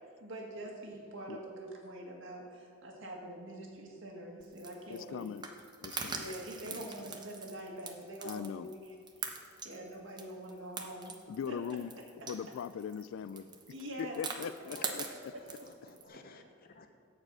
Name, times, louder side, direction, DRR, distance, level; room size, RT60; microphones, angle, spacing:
voice 1, 0.2-5.3 6.1-9.0 9.2-9.4 9.6-11.2 11.5-11.6 13.7-14.3 14.8-14.9, right 1 dB, 65° right, 0 dB, 1.8 m, -45 dB
sound 1, 4.4-16.1, right 4 dB, 20° right, 0.8 m, -43 dB
voice 2, 4.9-5.5 5.8-6.3 6.7-6.9 8.2-8.7 11.3-11.9 12.3-13.5 14.0-15.0, left 7 dB, 70° left, 17 dB, 0.3 m, -40 dB
voice 3, 13.1-13.5 14.7-15.1 15.4-16.9, left 3 dB, 45° left, 6 dB, 0.9 m, -55 dB
10.5 x 4.9 x 7.6 m, 2.4 s
head